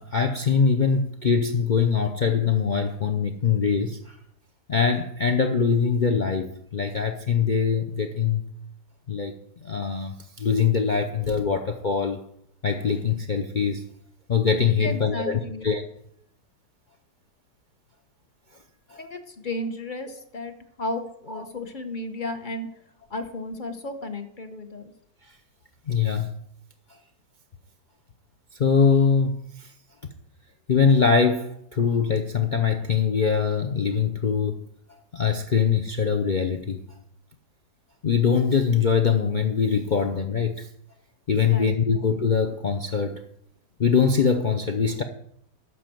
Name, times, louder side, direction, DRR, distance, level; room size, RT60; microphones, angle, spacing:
voice 1, 0.0-4.1 4.7-8.4 9.1-9.3 9.6-12.2 12.6-13.8 14.3-15.8 18.9-19.0 25.9-26.3 28.6-29.7 30.7-34.6 35.1-36.8 38.0-40.7 41.3-43.2 43.8-45.0, left 6 dB, 85° left, 5 dB, 0.4 m, -23 dB
voice 2, 14.8-15.7 19.0-22.7 23.1-24.9 41.4-41.8, left 2 dB, 35° left, 7 dB, 0.9 m, -34 dB
12.0 x 4.9 x 7.7 m, 0.71 s
omnidirectional pair, 1.9 m